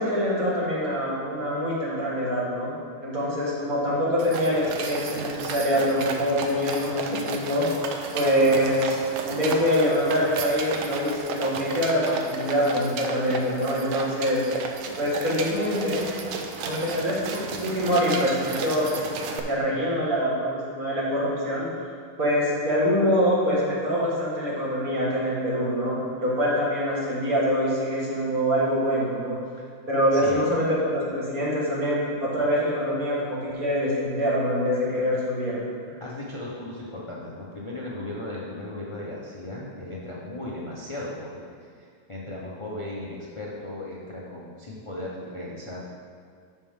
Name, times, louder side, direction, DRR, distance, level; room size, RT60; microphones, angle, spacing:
voice 1, 0.0-2.7 3.0-7.6 8.1-9.0 9.2-14.4 15.0-16.1 16.7-18.9 19.3-21.7 22.2-29.4 29.9-35.9, equal, 45° right, -6 dB, 2.2 m, -25 dB
sound 1, 4.2-19.4, right 5 dB, 80° right, 1.5 m, -34 dB
voice 2, 30.1-30.4 36.0-45.8, left 1 dB, 40° left, -5 dB, 0.4 m, -36 dB
11.0 x 5.6 x 3.7 m, 2.2 s
omnidirectional pair, 2.2 m